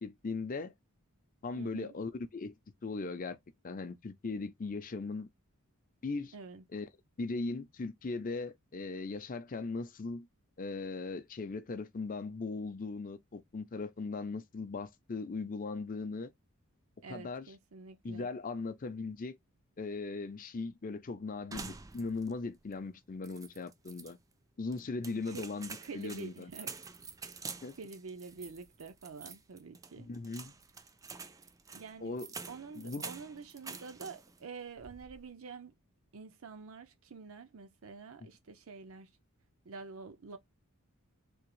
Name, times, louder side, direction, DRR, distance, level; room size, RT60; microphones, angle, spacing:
voice 1, 0.0-0.7 1.4-2.5 2.8-3.4 3.6-5.3 6.0-6.3 6.7-6.9 7.2-10.3 10.6-16.3 17.1-17.5 18.0-19.4 19.8-24.2 24.6-26.5 27.6-27.8 30.0-30.5 32.0-32.3 32.8-33.1, left 3 dB, 40° left, 0.5 m, -38 dB
voice 2, 1.5-1.9 6.3-6.6 17.0-18.3 25.1-25.5 25.8-26.7 27.8-30.1 31.7-32.2 32.5-35.7 36.1-39.1 39.6-40.4, right 4 dB, 65° right, 0.6 m, -47 dB
sound 1, 21.5-22.4 22.7-22.8 23.2-24.1 24.7-34.4 34.8-35.3, right 5 dB, 15° right, 0.3 m, -47 dB
3.5 x 2.8 x 3.1 m
head